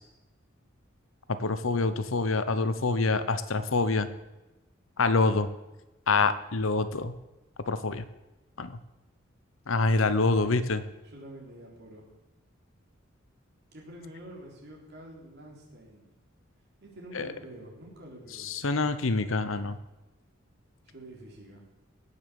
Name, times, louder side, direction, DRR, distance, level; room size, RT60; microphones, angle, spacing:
voice 1, 1.4-4.1 5.0-5.5 6.1-7.1 7.7-8.0 8.6-8.7 9.7-10.8 17.2-17.3 18.4-19.8, left 3 dB, 75° left, 12 dB, 0.8 m, -26 dB
voice 2, 11.0-12.1 13.7-16.1 16.8-18.7 20.9-21.6, right 1 dB, 50° right, -2 dB, 3.9 m, -47 dB
17.0 x 6.9 x 7.0 m, 1.0 s
head